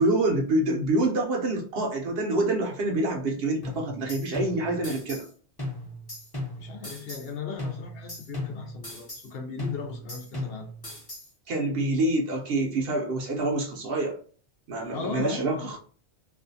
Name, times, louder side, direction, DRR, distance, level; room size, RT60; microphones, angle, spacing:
voice 1, 0.0-5.3 11.5-14.2 14.7-15.8, right 2 dB, 65° right, 0 dB, 0.8 m, -26 dB
sound 1, 3.6-5.3 5.6-7.3 7.6-9.3 9.6-11.3, left 1 dB, 25° left, 0.8 m, -37 dB
voice 2, 6.6-10.7 14.9-15.7, left 5 dB, 65° left, 2 dB, 0.8 m, -37 dB
2.4 x 2.3 x 2.6 m, 0.44 s
omnidirectional pair, 1.1 m